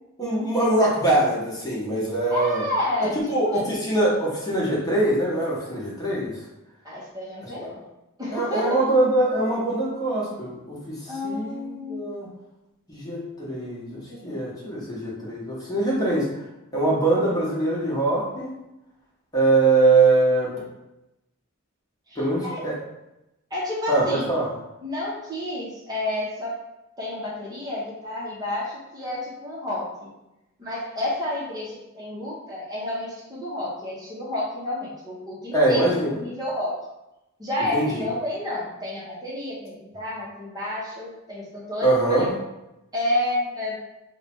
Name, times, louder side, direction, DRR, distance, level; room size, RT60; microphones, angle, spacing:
voice 1, 0.2-2.6 3.1-6.4 8.3-12.3 12.9-16.3 16.7-18.5 19.3-20.5 22.2-22.7 23.9-24.5 35.5-36.1 37.7-38.0 41.8-42.3, right 2 dB, 20° left, -6 dB, 1.0 m, -23 dB
voice 2, 2.3-3.8 6.8-7.8 8.2-8.8 11.1-12.2 14.1-14.7 22.1-22.7 23.5-24.3 24.8-26.6 27.0-29.9 30.6-36.8 37.4-42.3 42.9-43.8, left 1 dB, 20° right, -7 dB, 0.8 m, -30 dB
3.2 x 2.2 x 4.3 m, 0.93 s
head